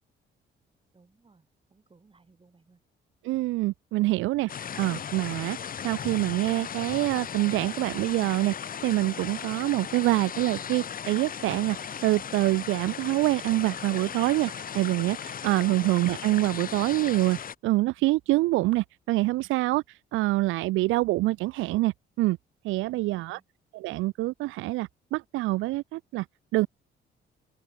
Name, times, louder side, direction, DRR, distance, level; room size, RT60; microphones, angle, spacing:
voice 1, 0.9-2.8 22.9-23.4, right 4 dB, 25° right, 6.5 m, -60 dB
voice 2, 3.2-4.5 4.8-5.6 5.8-8.5 8.8-11.8 12.0-17.4 17.6-19.8 20.1-22.4 22.6-23.4 23.7-26.3 26.5-26.7, right 19 dB, 90° right, 0.4 m, -26 dB
sound 1, 4.5-17.5, left 8 dB, 45° left, 1.1 m, -37 dB
open air
cardioid pair, 90°, 20 cm